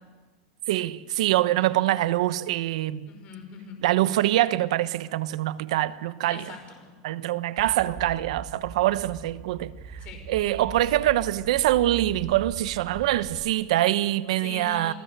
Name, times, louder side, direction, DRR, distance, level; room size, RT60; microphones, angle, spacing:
voice 1, 0.7-3.1 3.8-6.5 7.0-9.7 10.3-14.9, right 15 dB, 75° right, 0.9 m, -24 dB
voice 2, 3.1-3.8 6.3-6.9 10.0-10.2 14.4-14.9, left 5 dB, 35° left, 5.3 m, -42 dB
sound 1, 7.6-13.4, right 5 dB, 15° right, 2.4 m, -41 dB
28.5 x 18.0 x 6.8 m
supercardioid pair, 155°, 4 cm